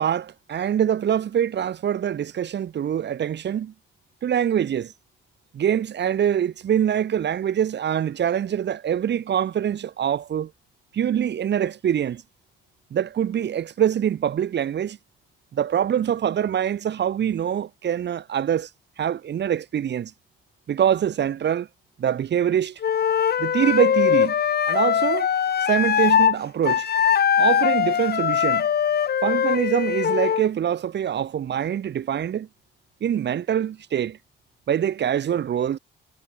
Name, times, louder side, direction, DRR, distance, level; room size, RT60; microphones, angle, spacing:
voice 1, 0.0-3.7 4.2-4.9 5.5-10.5 10.9-12.2 12.9-15.0 15.5-18.7 19.0-20.1 20.7-21.7 22.0-22.8 23.4-24.3 24.7-25.3 25.7-26.9 27.4-28.7 29.2-32.5 33.0-34.2 34.7-35.8, right 9 dB, 60° right, 3.3 m, -24 dB
Wind instrument woodwind instrument, 22.8-26.4 26.6-30.5, left 8 dB, 55° left, 1.9 m, -21 dB
cardioid pair, 90°, 20 cm